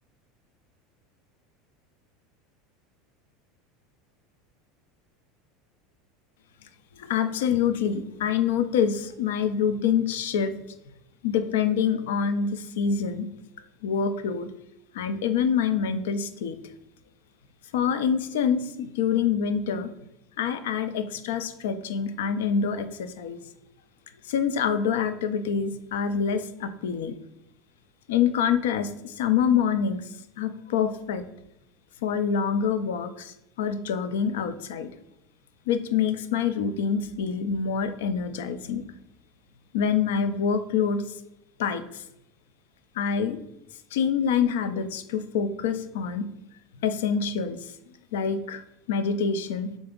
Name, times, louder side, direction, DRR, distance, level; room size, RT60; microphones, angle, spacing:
voice 1, 7.0-10.6 11.2-13.3 13.8-14.5 14.9-16.6 17.7-19.9 20.4-23.4 24.3-27.2 28.1-30.0 30.4-31.2 32.0-34.9 35.7-38.8 39.7-41.0 41.6-42.0 43.0-43.4 43.9-46.3 46.8-47.6 48.1-48.6 48.9-49.7, left 7 dB, 85° left, 10 dB, 0.4 m, -26 dB
3.9 x 3.4 x 3.6 m, 0.86 s
supercardioid pair, 120°, 0 cm